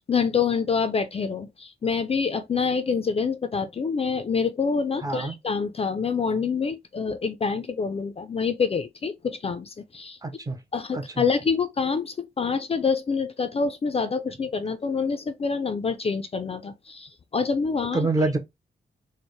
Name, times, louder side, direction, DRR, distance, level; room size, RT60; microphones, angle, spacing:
voice 1, 0.0-10.2 10.7-18.1, left 5 dB, 35° left, 0.4 m, -26 dB
voice 2, 5.0-5.3 10.2-10.6 10.9-11.3 17.9-18.4, right 3 dB, 20° right, 0.6 m, -26 dB
4.3 x 2.1 x 3.1 m
wide cardioid pair, 150°, 18 cm